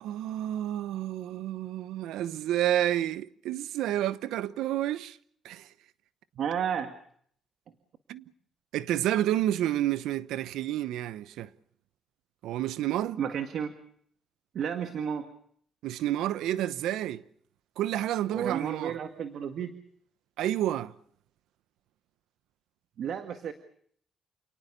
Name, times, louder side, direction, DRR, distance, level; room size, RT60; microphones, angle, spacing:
voice 1, 0.0-5.2 5.4-5.7 8.1-8.2 8.7-11.5 12.4-13.2 15.8-17.2 17.8-19.0 20.4-20.9, right 12 dB, 90° right, 0.9 m, -30 dB
voice 2, 6.4-6.9 13.2-13.7 14.5-15.3 18.3-19.7 23.0-23.5, right 8 dB, 65° right, 1.8 m, -32 dB
29.0 x 19.0 x 6.8 m
cardioid pair, 90°, 0 cm